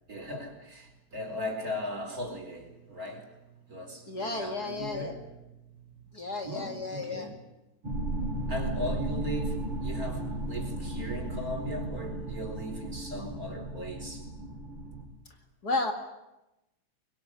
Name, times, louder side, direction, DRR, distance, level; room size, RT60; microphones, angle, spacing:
voice 1, 0.1-3.4 3.7-5.8 6.4-7.4 8.5-14.3, left 1 dB, 40° right, 3 dB, 5.1 m, -38 dB
voice 2, 4.1-5.1 6.1-7.3 15.6-15.9, left 2 dB, 45° left, 4 dB, 2.7 m, -33 dB
sound 1, 7.8-15.0, right 2 dB, 80° right, 5.1 m, -35 dB
24.0 x 23.0 x 9.7 m, 0.94 s
omnidirectional pair, 2.4 m